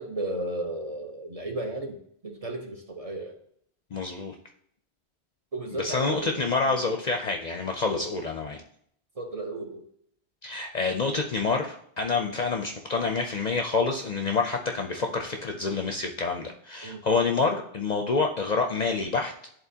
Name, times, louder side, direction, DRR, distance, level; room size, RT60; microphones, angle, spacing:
voice 1, 0.0-2.0 2.2-3.4 5.5-6.8 7.9-8.0 9.2-9.8 16.8-17.0, right 2 dB, 35° right, 2 dB, 0.8 m, -34 dB
voice 2, 3.9-4.3 5.7-8.6 10.4-19.5, left 4 dB, 50° left, 4 dB, 0.6 m, -27 dB
10.5 x 3.8 x 2.8 m, 0.67 s
omnidirectional pair, 1.1 m